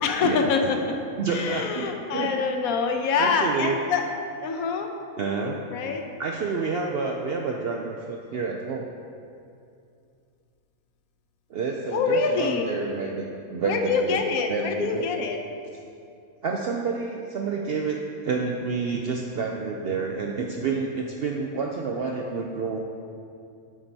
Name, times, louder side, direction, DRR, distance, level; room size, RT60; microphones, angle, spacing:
voice 1, 0.0-1.0 1.3-4.1 4.4-4.9 5.7-6.0 11.9-12.6 13.6-15.4, left 5 dB, 85° left, 4 dB, 1.1 m, -25 dB
voice 2, 1.2-2.3 3.2-3.8 5.2-5.6 6.2-8.9 11.5-15.1 16.4-22.8, right 4 dB, 70° right, 0 dB, 0.6 m, -29 dB
8.7 x 7.4 x 2.7 m, 2.5 s
omnidirectional pair, 1.5 m